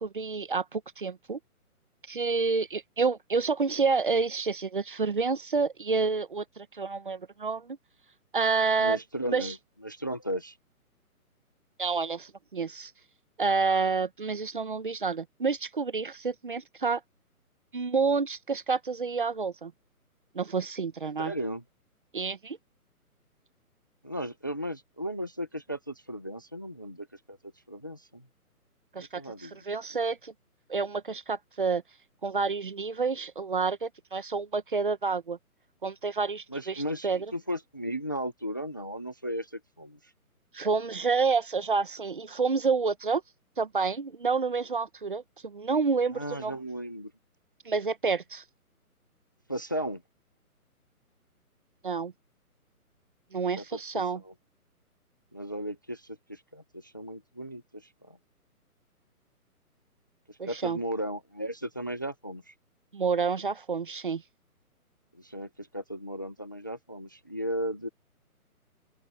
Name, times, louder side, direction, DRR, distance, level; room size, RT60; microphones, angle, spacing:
voice 1, 0.0-1.4 2.1-7.8 8.3-9.0 9.3-9.5 11.8-12.9 13.4-17.0 17.7-19.7 20.3-21.3 22.1-22.6 28.9-30.3 30.7-31.8 32.2-35.4 35.8-37.3 40.5-43.2 43.6-46.5 47.6-48.4 51.8-52.1 53.3-54.2 60.4-60.8 62.9-64.2, right 4 dB, 35° right, 1.2 m, -29 dB
voice 2, 8.8-9.6 9.8-10.6 21.2-21.6 24.0-27.4 27.7-28.2 29.1-29.6 36.5-40.0 46.1-47.1 49.5-50.0 53.6-53.7 54.2-54.3 55.3-58.2 60.3-62.5 65.1-67.9, equal, 15° left, 0.8 m, -35 dB
open air
hypercardioid pair, 180°, 45 cm